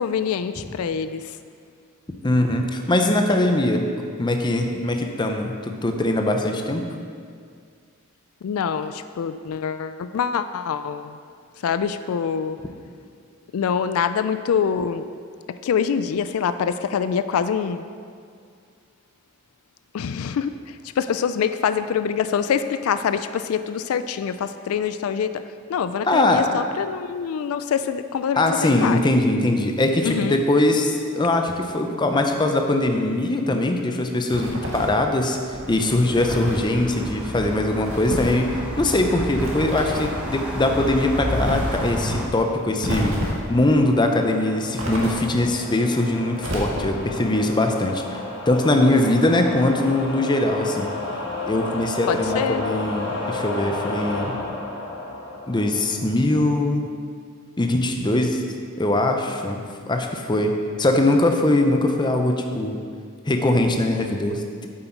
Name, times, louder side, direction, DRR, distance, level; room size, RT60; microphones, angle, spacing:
voice 1, 0.0-1.4 8.4-11.2 11.6-12.6 13.5-15.1 15.6-17.9 19.9-25.4 25.7-29.0 30.0-30.4 52.1-52.6, left 7 dB, 85° left, 11 dB, 0.3 m, -25 dB
voice 2, 2.2-3.8 4.2-6.9 26.1-26.4 28.4-35.4 35.7-43.2 43.5-50.9 51.5-54.4 55.5-56.9 57.6-58.4 58.8-59.6 59.9-60.5 60.8-62.8 63.3-64.7, left 1 dB, 20° left, 4 dB, 0.6 m, -21 dB
sound 1, 34.3-35.1 36.2-36.7 37.8-38.4 39.3-40.2 41.4-41.9 42.8-43.5 44.8-45.5 46.4-47.1, equal, 65° right, 1.6 m, -29 dB
sound 2, 35.5-42.3, equal, 5° right, 0.9 m, -30 dB
sound 3, 40.2-56.5, left 2 dB, 55° left, 1.4 m, -33 dB
8.0 x 7.6 x 4.5 m, 2.2 s
head